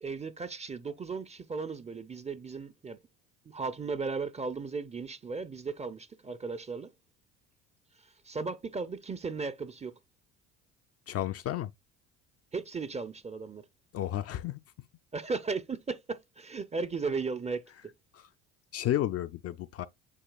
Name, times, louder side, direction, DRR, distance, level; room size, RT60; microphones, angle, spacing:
voice 1, 0.0-3.0 3.5-6.9 8.2-9.9 12.5-13.6 15.1-17.7, right 4 dB, 20° right, 0.5 m, -36 dB
voice 2, 11.1-11.7 13.9-14.6 18.1-18.3 18.7-19.9, left 12 dB, 40° left, 0.4 m, -32 dB
8.3 x 2.8 x 2.2 m
hypercardioid pair, 75°, 37 cm